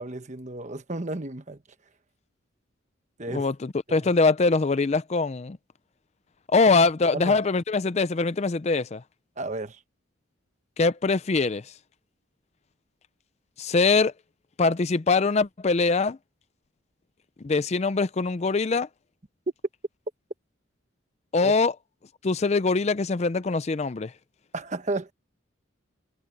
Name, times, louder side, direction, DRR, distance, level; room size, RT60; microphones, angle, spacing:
voice 1, 0.0-1.6 3.2-3.5 4.0-4.1 7.1-7.4 9.4-9.8 21.4-21.5 24.5-25.1, right 2 dB, 35° right, 1.1 m, -32 dB
voice 2, 3.3-5.6 6.5-9.0 10.8-11.6 13.6-14.1 14.6-16.2 17.4-18.9 21.3-21.7 22.2-24.1, left 3 dB, 35° left, 0.4 m, -23 dB
head